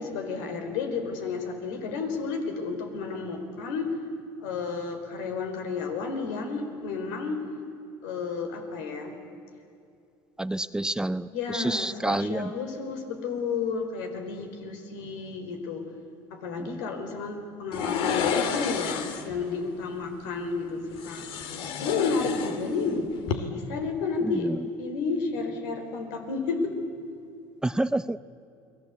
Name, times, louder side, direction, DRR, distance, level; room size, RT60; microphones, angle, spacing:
voice 1, 0.0-4.0 4.4-7.4 8.0-9.1 11.3-15.8 16.3-21.3 21.8-26.7, left 4 dB, 85° left, 5 dB, 4.3 m, -31 dB
voice 2, 10.4-11.3 11.5-12.5 27.6-28.2, right 1 dB, 10° right, 15 dB, 0.5 m, -27 dB
sound 1, 17.7-19.4 21.0-22.9 23.2-23.4, left 7 dB, 65° left, 2.4 m, -30 dB
30.0 x 20.5 x 8.3 m, 2.6 s
supercardioid pair, 110°, 10 cm